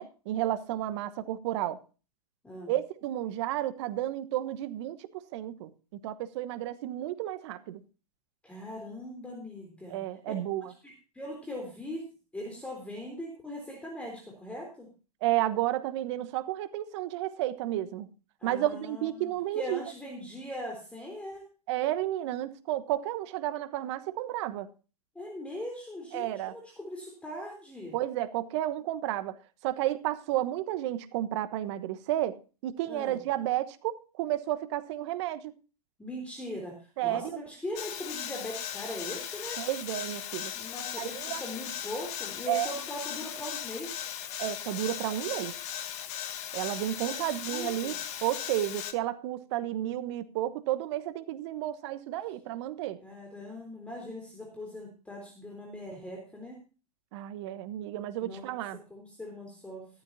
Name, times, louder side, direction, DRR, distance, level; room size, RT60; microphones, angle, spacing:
voice 1, 0.0-1.8 2.7-5.7 6.0-7.8 9.9-10.7 15.2-18.1 18.4-19.8 21.7-24.7 26.1-26.5 27.9-29.4 29.6-35.5 37.0-37.4 39.6-40.5 41.0-41.4 42.5-42.7 44.4-45.5 46.5-53.0 57.1-58.8, right 13 dB, 45° right, 1.2 m, -32 dB
voice 2, 8.4-10.0 10.3-10.4 10.8-12.1 12.3-14.9 18.4-21.5 25.2-28.0 32.9-33.2 36.0-39.6 40.5-44.1 47.0-47.9 53.0-56.6 58.2-59.8, left 1 dB, 5° left, 3.6 m, -40 dB
sound 1, 37.8-48.9, left 10 dB, 35° left, 1.4 m, -38 dB
15.0 x 13.0 x 2.7 m
figure-of-eight pair, 110°, 20 cm